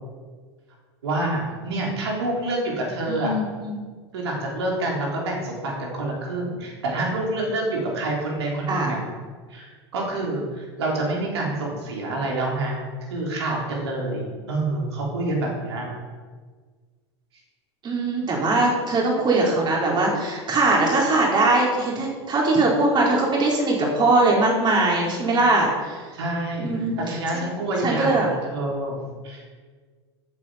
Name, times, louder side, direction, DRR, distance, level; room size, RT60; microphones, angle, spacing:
voice 1, 1.0-3.3 4.1-9.0 9.5-12.8 13.1-15.9 26.1-29.0 29.2-29.5, right 2 dB, 70° right, -2 dB, 4.0 m, -27 dB
voice 2, 3.1-3.8 8.7-8.9 17.8-26.0 26.6-27.5 27.8-28.3, right 2 dB, 30° right, -2 dB, 4.2 m, -21 dB
14.0 x 8.6 x 5.2 m, 1.5 s
figure-of-eight pair, 80°, 15 cm